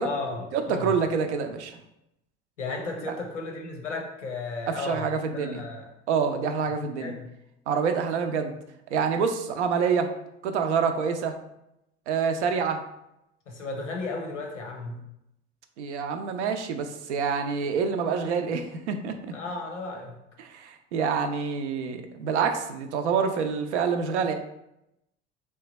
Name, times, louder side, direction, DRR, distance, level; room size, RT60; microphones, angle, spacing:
voice 1, 0.0-1.0 2.6-5.8 7.0-7.3 13.5-15.0 19.3-20.2, left 3 dB, 85° left, 2 dB, 0.7 m, -34 dB
voice 2, 0.5-1.8 3.1-3.2 4.7-5.6 6.1-7.1 7.7-8.5 8.9-10.1 10.4-11.4 12.1-12.8 15.8-19.3 20.4-24.3, right 6 dB, 75° right, 6 dB, 0.5 m, -27 dB
3.2 x 2.2 x 4.0 m, 0.85 s
figure-of-eight pair, 65°, 35 cm